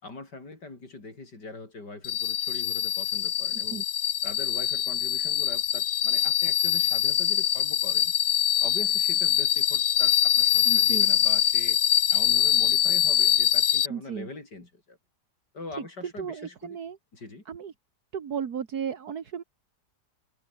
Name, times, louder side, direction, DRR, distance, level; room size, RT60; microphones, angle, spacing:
voice 1, 0.0-3.9 4.2-8.1 8.6-11.8 12.1-15.0 15.5-16.8 17.1-17.4, left 3 dB, 90° left, 5.9 m, -42 dB
sound 1, 2.0-13.9, left 11 dB, 75° left, 1.5 m, -24 dB
voice 2, 10.7-11.1 13.9-14.3 15.8-15.9 16.2-17.0 17.5-17.7 18.1-19.4, right 7 dB, 70° right, 2.0 m, -34 dB
omnidirectional pair, 1.8 m